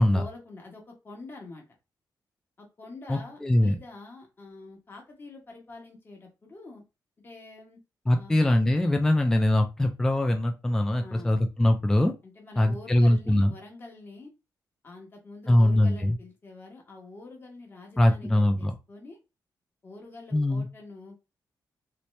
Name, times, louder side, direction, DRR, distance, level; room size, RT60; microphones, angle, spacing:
voice 1, 0.1-1.6 2.6-6.8 7.2-7.8 8.1-8.4 11.0-11.4 12.2-14.3 14.8-19.2 19.8-21.2, left 2 dB, 30° left, 0 dB, 1.1 m, -46 dB
voice 2, 3.1-3.8 8.1-12.1 12.6-13.5 15.5-16.2 18.0-18.7 20.3-20.7, left 1 dB, 5° left, 4 dB, 0.3 m, -22 dB
3.2 x 2.9 x 3.1 m, 0.27 s
wide cardioid pair, 155°, 7 cm